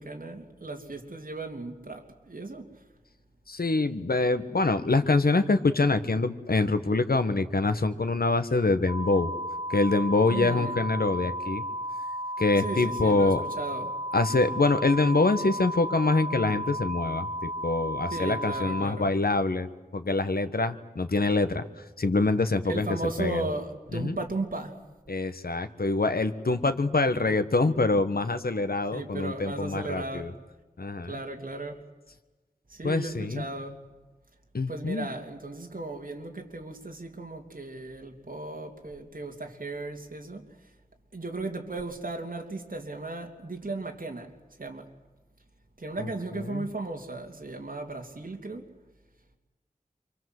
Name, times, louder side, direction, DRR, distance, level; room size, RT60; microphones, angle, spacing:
voice 1, 0.0-2.7 10.3-10.7 12.6-13.9 18.1-19.1 22.6-24.8 28.9-30.3 31.1-31.8 32.7-33.8 34.7-40.5 41.1-44.3 44.6-44.9 45.8-48.7, right 2 dB, 65° right, 3.2 m, -36 dB
voice 2, 3.5-9.3 9.7-11.6 12.4-13.4 14.1-21.6 22.0-22.9 23.2-23.4 23.9-24.2 25.1-30.3 30.8-31.2 32.8-33.4 34.5-35.1 46.0-46.7, left 3 dB, 85° left, 1.6 m, -25 dB
sound 1, 8.9-18.9, equal, 35° right, 1.9 m, -34 dB
28.0 x 24.5 x 8.0 m
wide cardioid pair, 55°, 15 cm